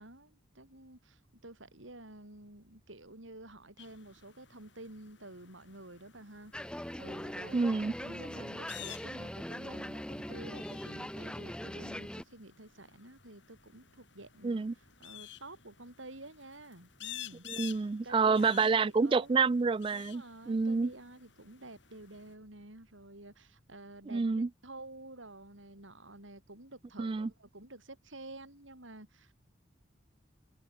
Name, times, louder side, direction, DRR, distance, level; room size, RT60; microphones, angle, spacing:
voice 1, 0.0-7.7 8.0-17.4 18.0-19.4 19.9-29.3, right 2 dB, 85° right, 7.4 m, -50 dB
sound 1, 3.8-22.3, left 12 dB, 70° left, 4.9 m, -52 dB
sound 2, 6.5-12.2, equal, 5° left, 1.8 m, -41 dB
voice 2, 7.5-7.9 14.4-14.7 17.4-20.9 24.1-24.5 27.0-27.3, right 4 dB, 25° right, 0.3 m, -28 dB
head